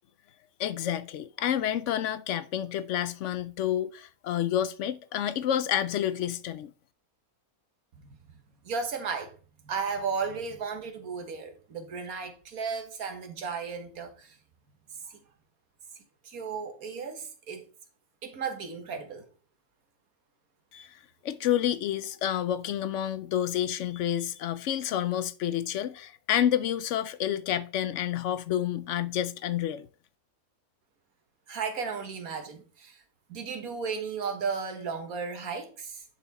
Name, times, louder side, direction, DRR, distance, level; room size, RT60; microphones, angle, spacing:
voice 1, 0.6-6.7 20.7-20.9 21.2-29.9, left 10 dB, 65° left, 0.8 m, -29 dB
voice 2, 8.6-9.3 9.6-14.4 15.1-15.2 16.2-17.7 18.2-19.2 31.5-33.0 33.3-36.0, right 5 dB, 75° right, 1.7 m, -34 dB
10.0 x 4.2 x 4.0 m
omnidirectional pair, 1.6 m